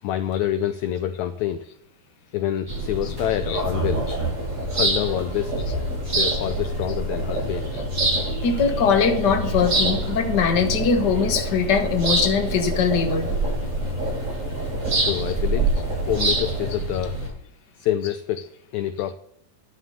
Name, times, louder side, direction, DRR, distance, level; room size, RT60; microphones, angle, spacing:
voice 1, 0.0-1.6 2.3-4.0 4.7-5.6 6.0-7.7 15.0-15.7 16.0-17.2 17.8-18.4 18.7-19.1, left 11 dB, 85° left, 11 dB, 1.6 m, -26 dB
sound 1, 2.7-17.3, right 2 dB, 25° right, 7.1 m, -27 dB
sound 2, 3.5-16.7, right 2 dB, 45° right, 7.5 m, -32 dB
voice 2, 8.4-13.3, left 6 dB, 65° left, 6 dB, 1.0 m, -21 dB
11.5 x 6.4 x 9.1 m, 0.72 s
omnidirectional pair, 4.1 m